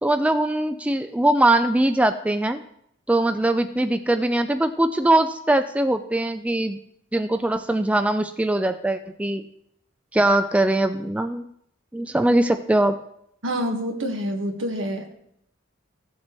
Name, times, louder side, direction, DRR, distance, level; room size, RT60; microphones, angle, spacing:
voice 1, 0.0-2.6 3.1-6.8 7.1-9.4 10.1-11.4 11.9-13.0, right 1 dB, 5° right, 9 dB, 0.3 m, -21 dB
voice 2, 13.4-15.1, equal, 75° right, 3 dB, 1.5 m, -27 dB
15.5 x 7.3 x 3.1 m, 0.72 s
head